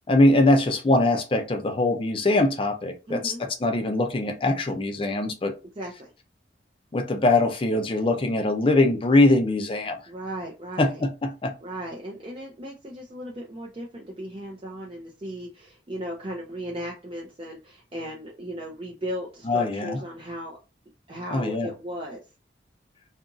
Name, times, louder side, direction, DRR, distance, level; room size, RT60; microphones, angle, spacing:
voice 1, 0.1-5.5 6.9-10.0 10.8-11.5 19.5-20.0 21.3-21.7, left 2 dB, 30° left, 6 dB, 0.5 m, -22 dB
voice 2, 3.1-3.4 5.8-6.1 10.1-11.0 11.6-20.6 21.1-22.2, equal, 30° right, -2 dB, 0.5 m, -36 dB
2.8 x 2.5 x 2.4 m, 0.30 s
head